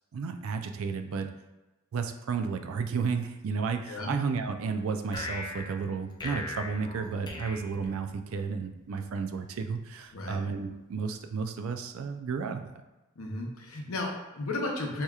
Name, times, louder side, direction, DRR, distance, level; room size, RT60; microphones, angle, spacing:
voice 1, 0.1-1.3 1.9-12.7, right 5 dB, 70° right, 7 dB, 0.4 m, -32 dB
sound 1, 5.1-8.5, left 3 dB, 20° left, 0.4 m, -40 dB
voice 2, 13.2-15.0, left 2 dB, 75° left, 1 dB, 0.7 m, -34 dB
4.7 x 2.8 x 2.3 m, 1.1 s
head